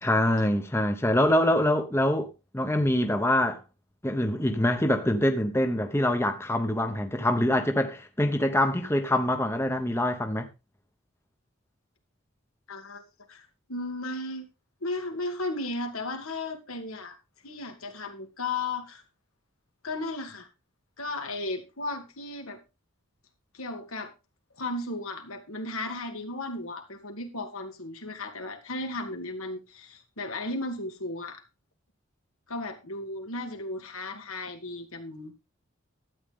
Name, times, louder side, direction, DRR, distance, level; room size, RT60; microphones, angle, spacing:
voice 1, 0.0-3.6 4.0-10.5, left 1 dB, 10° left, 0.9 m, -25 dB
voice 2, 12.7-13.0 13.3-14.5 14.8-17.2 17.4-19.0 19.8-20.5 21.0-22.6 23.5-24.1 24.6-31.4 32.5-35.3, left 2 dB, 90° left, 2.4 m, -35 dB
12.5 x 9.0 x 3.7 m
head